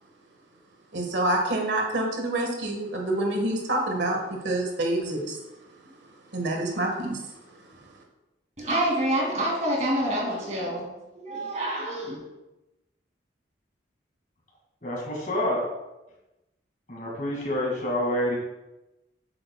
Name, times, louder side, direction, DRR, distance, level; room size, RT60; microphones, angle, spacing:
voice 1, 0.9-5.4 5.8-5.9 6.3-7.3 7.7-7.8, right 1 dB, 70° right, 2 dB, 1.4 m, -27 dB
voice 2, 8.6-10.9 11.1-12.2, right 1 dB, 40° right, -3 dB, 2.5 m, -27 dB
voice 3, 14.8-15.7 16.9-18.4, left 1 dB, 45° left, -2 dB, 2.1 m, -27 dB
8.3 x 7.7 x 2.3 m, 0.99 s
head